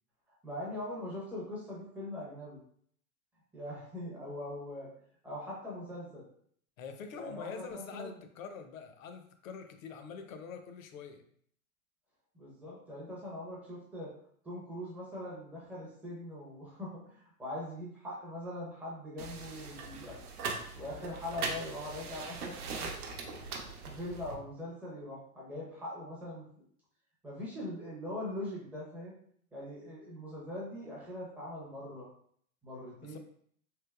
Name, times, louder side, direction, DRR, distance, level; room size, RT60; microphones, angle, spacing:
voice 1, 0.3-2.6 3.5-4.9 5.2-6.3 7.1-8.2 12.3-14.1 14.4-20.2 20.8-22.9 23.2-23.4 23.8-26.6 27.2-29.1 29.5-32.1 32.6-33.2, left 1 dB, 5° right, -6 dB, 0.4 m, -42 dB
voice 2, 6.8-11.2 33.0-33.2, left 6 dB, 65° left, 7 dB, 0.6 m, -45 dB
sound 1, 19.2-24.3, right 4 dB, 90° right, 0.8 m, -40 dB
3.3 x 3.0 x 2.3 m, 0.62 s
hypercardioid pair, 140°, 43 cm